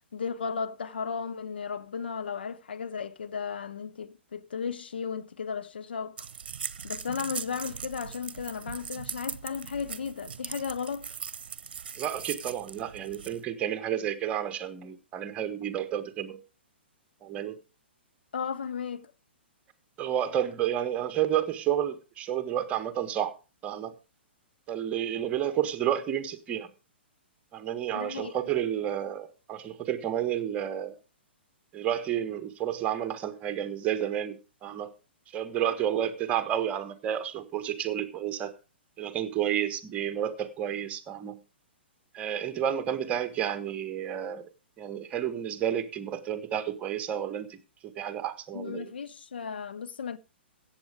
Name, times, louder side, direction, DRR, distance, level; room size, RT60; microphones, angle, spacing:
voice 1, 0.1-6.3 6.8-11.1 18.3-19.1 27.9-28.3 48.5-50.2, left 6 dB, 60° left, 0.8 m, -35 dB
sound 1, 6.2-13.4, right 7 dB, 55° right, 1.0 m, -40 dB
voice 2, 12.0-16.4 17.2-17.6 20.0-23.3 23.6-23.9 24.7-26.7 27.5-30.9 31.7-34.9 35.3-38.5 39.0-41.4 42.1-44.4 44.8-47.6 48.0-48.9, right 10 dB, 20° right, 1.4 m, -31 dB
15.0 x 8.2 x 4.9 m
figure-of-eight pair, 115°, 6 cm